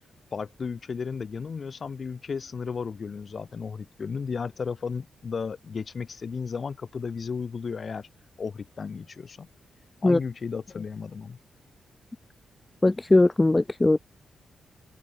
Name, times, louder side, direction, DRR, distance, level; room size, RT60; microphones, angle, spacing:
voice 1, 0.3-8.1 8.4-9.5 10.0-11.4, left 5 dB, 40° left, 3.7 m, -34 dB
voice 2, 12.8-14.0, left 2 dB, 15° left, 0.6 m, -20 dB
wide cardioid pair, 160°, 0 cm